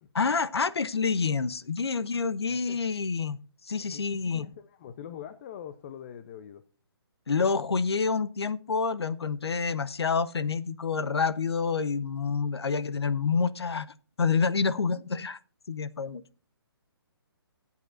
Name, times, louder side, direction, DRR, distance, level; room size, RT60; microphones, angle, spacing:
voice 1, 0.1-3.4 3.6-4.5 7.3-15.4 15.7-16.2, left 5 dB, 90° left, 17 dB, 0.8 m, -28 dB
voice 2, 3.9-6.6, left 9 dB, 30° left, 11 dB, 0.7 m, -43 dB
18.0 x 8.4 x 2.5 m, 0.39 s
hypercardioid pair, 155°, 13 cm